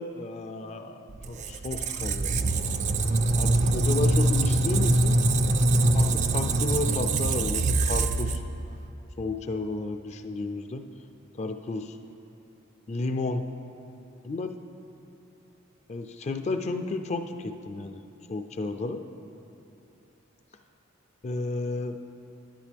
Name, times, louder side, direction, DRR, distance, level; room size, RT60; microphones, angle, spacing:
voice 1, 0.0-2.6 3.4-5.2 5.9-8.4 9.2-10.8 11.4-12.0 12.9-13.4 14.2-14.5 15.9-18.0 18.3-19.0 21.2-22.0, left 3 dB, 35° left, 7 dB, 0.4 m, -32 dB
Squeak, 1.1-8.8, right 2 dB, 35° right, 0.4 m, -24 dB
10.5 x 10.0 x 3.4 m, 2.8 s
head